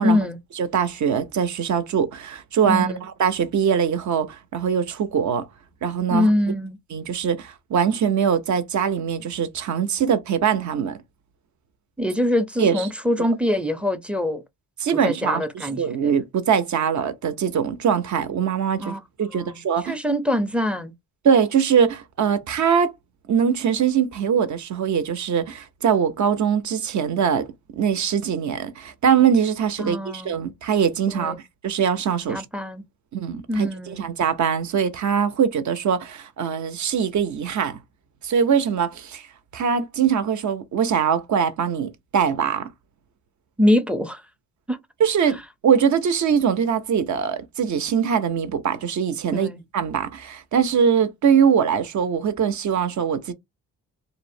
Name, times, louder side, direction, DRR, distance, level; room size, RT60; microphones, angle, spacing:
voice 1, 0.0-0.4 2.6-3.0 6.1-6.8 12.0-14.4 15.0-16.1 18.8-19.0 19.3-20.9 29.8-30.4 31.1-31.4 32.3-32.8 33.5-34.1 43.6-44.2 44.7-44.8 49.3-49.6, left 1 dB, 5° right, 0.4 m, -24 dB
voice 2, 0.6-5.5 5.8-6.3 6.9-11.0 12.6-12.9 14.8-20.0 21.2-22.9 23.3-27.5 27.7-31.4 31.6-32.4 33.1-37.8 38.2-39.3 39.5-42.7 45.0-53.3, right 7 dB, 55° right, 0.6 m, -22 dB
2.5 x 2.0 x 2.6 m
cardioid pair, 70°, 37 cm